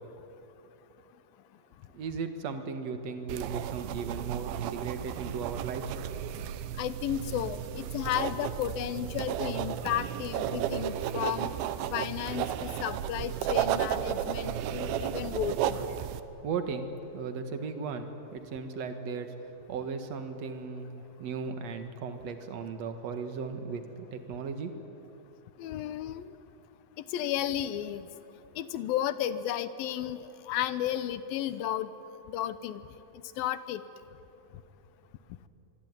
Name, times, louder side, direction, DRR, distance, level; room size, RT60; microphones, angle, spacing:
voice 1, 1.9-6.0 16.4-19.3 19.7-24.7, right 5 dB, 55° right, 7 dB, 2.5 m, -36 dB
sound 1, 3.3-16.2, right 10 dB, 90° right, 2.8 m, -33 dB
voice 2, 6.8-11.5 11.9-15.8 25.6-26.3 27.1-28.1 28.6-31.9 32.3-32.8 33.4-33.8, left 11 dB, 80° left, 13 dB, 2.7 m, -33 dB
24.5 x 23.5 x 9.7 m, 3.0 s
omnidirectional pair, 4.2 m